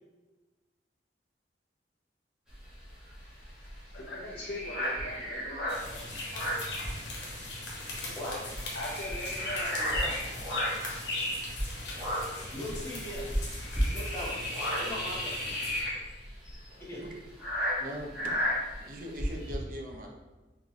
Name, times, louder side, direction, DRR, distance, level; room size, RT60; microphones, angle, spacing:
sound 1, 2.5-7.5 7.7-7.9 8.3-10.9 11.5-19.6, equal, 5° right, 1.4 m, -33 dB
voice 1, 2.9-6.1 8.7-10.2, left 1 dB, 60° left, -4 dB, 0.6 m, -41 dB
sound 2, 5.7-15.8, left 2 dB, 85° left, 1.1 m, -38 dB
voice 2, 12.5-13.3 13.9-14.4 14.8-15.6 16.8-17.0, left 1 dB, 15° left, -7 dB, 1.2 m, -39 dB
voice 3, 17.8-18.3 18.7-20.1, equal, 50° right, 1 dB, 0.7 m, -41 dB
4.0 x 3.3 x 3.1 m, 1.2 s
head